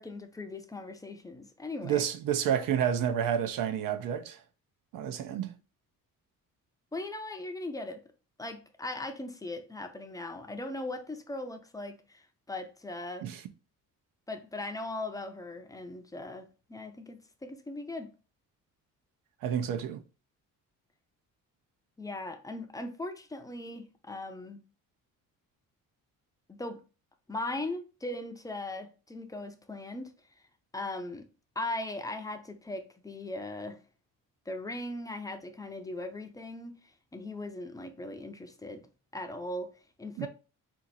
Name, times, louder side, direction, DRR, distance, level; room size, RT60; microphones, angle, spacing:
voice 1, 0.0-2.0 6.9-8.0 8.4-13.3 14.3-18.1 22.0-24.6 26.5-26.8 27.3-30.1 30.7-31.3 31.6-33.8 34.5-36.7 37.1-38.9 39.1-39.7 40.0-40.3, left 2 dB, 10° left, 0.4 m, -39 dB
voice 2, 1.8-4.4 4.9-5.5 13.2-13.4 19.4-20.0 40.2-40.3, right 9 dB, 75° right, 0.6 m, -30 dB
4.4 x 2.5 x 3.9 m
cardioid pair, 155°, 33 cm